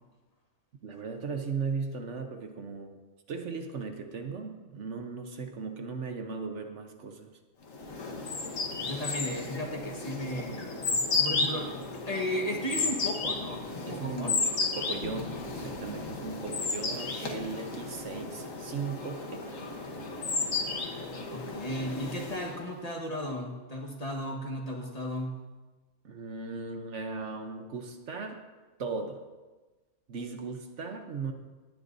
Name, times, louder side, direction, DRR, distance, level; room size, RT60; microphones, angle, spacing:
voice 1, 0.8-3.0 3.3-7.4 13.9-14.5 14.8-19.4 26.0-28.4 28.8-29.2 30.1-31.3, right 4 dB, 65° right, 5 dB, 1.2 m, -37 dB
sound 1, 7.7-22.7, left 4 dB, 80° left, 1.6 m, -33 dB
voice 2, 8.5-14.4 21.3-25.4, left 1 dB, 30° left, 0 dB, 1.5 m, -35 dB
19.5 x 9.6 x 2.7 m, 1.2 s
omnidirectional pair, 1.3 m